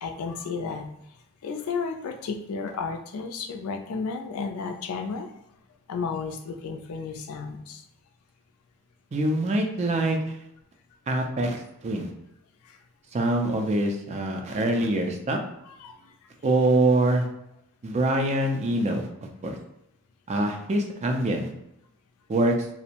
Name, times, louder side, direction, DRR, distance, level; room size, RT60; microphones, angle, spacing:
voice 1, 0.0-0.9 1.4-5.3 5.9-7.8 12.6-12.8 15.6-16.1, left 5 dB, 75° left, 5 dB, 0.3 m, -33 dB
voice 2, 9.1-10.4 11.1-12.1 13.1-15.4 16.4-17.3 17.8-19.1 19.4-19.6 20.3-21.5 22.3-22.6, right 1 dB, 30° right, 3 dB, 0.3 m, -24 dB
2.5 x 2.0 x 2.8 m, 0.81 s
head